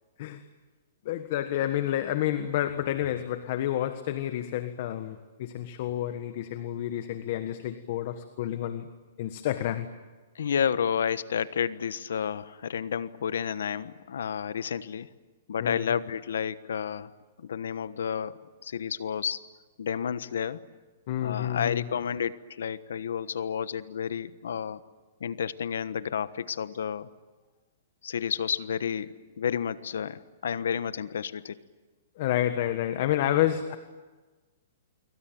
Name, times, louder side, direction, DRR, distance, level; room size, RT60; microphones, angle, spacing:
voice 1, 1.0-8.9 9.2-9.9 15.6-15.9 21.1-21.9 32.2-33.8, left 12 dB, 50° left, 10 dB, 1.5 m, -29 dB
voice 2, 10.3-15.1 15.5-17.1 17.4-19.4 19.8-20.6 21.2-24.8 25.2-27.1 28.0-31.6, left 7 dB, 80° left, 15 dB, 1.2 m, -31 dB
26.5 x 24.0 x 9.4 m, 1.3 s
hypercardioid pair, 150°, 0 cm